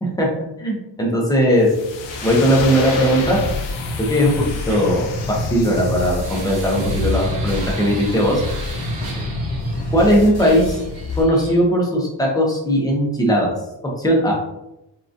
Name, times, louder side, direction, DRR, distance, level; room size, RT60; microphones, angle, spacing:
voice 1, 0.6-1.7 2.2-3.4 4.0-8.4 9.9-10.8 11.2-13.5 14.0-14.3, equal, 10° left, -3 dB, 0.6 m, -18 dB
sound 1, 1.6-6.5, left 5 dB, 85° left, 0.5 m, -32 dB
sound 2, 2.0-10.0 10.4-11.6, right 2 dB, 55° right, 0.9 m, -37 dB
sound 3, 3.2-11.2, left 2 dB, 70° left, 1.3 m, -27 dB
3.7 x 2.4 x 2.5 m, 0.91 s
wide cardioid pair, 160°, 43 cm